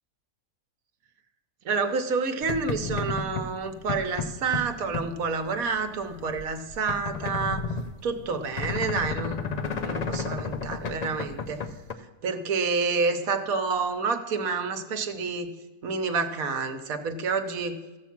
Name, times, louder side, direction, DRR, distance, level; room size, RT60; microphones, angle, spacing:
voice 1, 1.6-7.6 8.0-11.6 12.2-15.5 15.8-17.8, right 4 dB, 75° right, 7 dB, 1.3 m, -29 dB
sound 1, 2.4-11.9, left 4 dB, 65° left, 0.4 m, -33 dB
14.5 x 7.2 x 5.9 m, 1.2 s
omnidirectional pair, 1.5 m